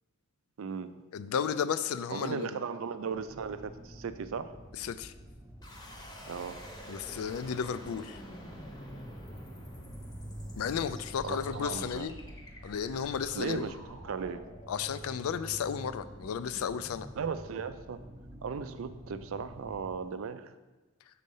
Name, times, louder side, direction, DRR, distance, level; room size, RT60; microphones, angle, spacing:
voice 1, 0.6-0.9 2.1-4.5 6.3-6.6 11.2-12.3 13.4-14.5 17.1-18.0 18.4-20.5, right 6 dB, 65° right, 12 dB, 0.4 m, -37 dB
voice 2, 1.1-2.6 4.8-5.1 6.9-8.2 10.6-12.2 12.6-13.7 14.7-17.1, left 7 dB, 75° left, 13 dB, 0.3 m, -33 dB
sound 1, 3.1-20.0, equal, 15° right, 0.7 m, -49 dB
sound 2, 5.6-18.6, equal, 20° left, 0.8 m, -49 dB
6.4 x 4.1 x 5.4 m, 1.2 s
head